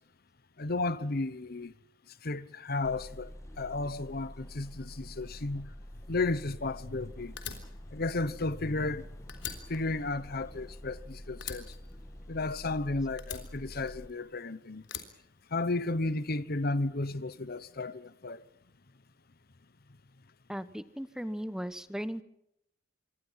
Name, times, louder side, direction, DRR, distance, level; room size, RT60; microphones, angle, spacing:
voice 1, 0.6-1.7 2.2-3.3 3.6-5.7 6.1-7.3 7.9-9.1 9.7-11.7 12.3-14.8 15.5-18.4, left 2 dB, 55° left, 1.1 m, -33 dB
sound 1, 2.8-14.1, equal, 15° left, 2.1 m, -47 dB
Fire, 7.4-9.0 9.3-11.0 11.4-12.7 13.2-14.3 14.8-16.0, left 8 dB, 75° left, 3.6 m, -44 dB
voice 2, 20.5-22.2, equal, 5° right, 1.0 m, -37 dB
26.0 x 23.5 x 5.8 m
head